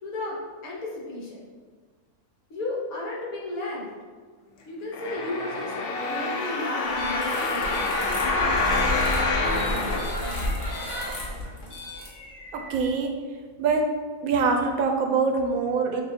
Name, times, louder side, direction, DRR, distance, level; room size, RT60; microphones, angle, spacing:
voice 1, 0.0-1.4 2.5-3.9 4.7-5.7 6.1-8.2, left 2 dB, 70° left, -4 dB, 1.5 m, -34 dB
sound 1, 4.9-10.8 11.4-11.5, left 3 dB, 85° left, 0.5 m, -27 dB
sound 2, 6.9-12.8, left 1 dB, 45° left, 0.9 m, -32 dB
voice 2, 12.5-13.1 13.6-13.8 14.2-16.0, right 4 dB, 70° right, 3 dB, 1.0 m, -24 dB
6.2 x 2.3 x 2.7 m, 1.5 s
omnidirectional pair, 1.6 m